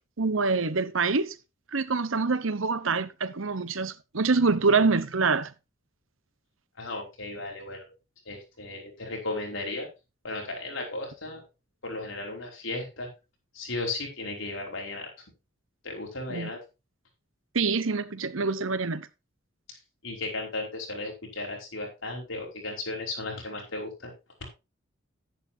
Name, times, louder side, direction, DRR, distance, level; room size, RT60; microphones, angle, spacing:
voice 1, 0.2-1.4 1.7-5.5 16.3-16.5 17.5-19.1, right 4 dB, 85° right, 1.0 m, -25 dB
voice 2, 6.8-7.9 8.2-9.9 10.2-11.4 11.8-13.1 13.5-15.1 15.8-16.6 19.7-19.8 20.0-24.1 24.4-24.5, left 2 dB, 80° left, 5.1 m, -35 dB
11.0 x 10.5 x 2.7 m
head